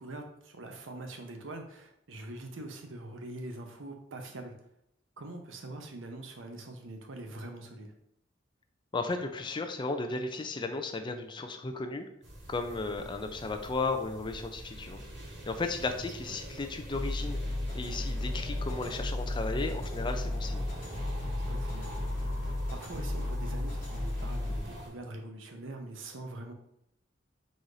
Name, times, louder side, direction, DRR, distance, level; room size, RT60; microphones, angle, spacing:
voice 1, 0.0-4.5 5.2-7.9 16.0-16.4 21.4-21.9 22.7-26.5, right 2 dB, 80° right, 4 dB, 0.8 m, -43 dB
voice 2, 8.9-12.1 12.5-15.0 15.5-17.4 17.7-20.7, left 3 dB, 25° left, 6 dB, 0.4 m, -34 dB
sound 1, 12.2-24.9, right 1 dB, 60° right, 1.1 m, -44 dB
sound 2, 16.9-24.6, left 1 dB, 45° left, 1.3 m, -34 dB
4.1 x 2.6 x 4.7 m, 0.78 s
head